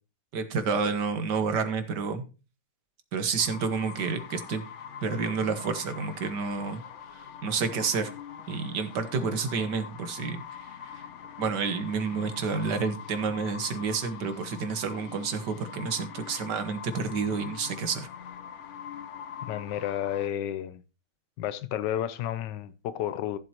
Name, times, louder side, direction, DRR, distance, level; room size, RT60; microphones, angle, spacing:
voice 1, 0.3-2.2 3.1-4.7 5.0-6.8 7.4-8.1 8.5-10.4 10.9-11.0 11.4-18.1, right 5 dB, 75° right, 1.8 m, -29 dB
sound 1, 3.4-20.3, left 8 dB, 60° left, 0.8 m, -43 dB
voice 2, 19.4-20.8 21.4-23.4, left 11 dB, 90° left, 1.4 m, -31 dB
14.5 x 7.7 x 2.9 m
omnidirectional pair, 1.8 m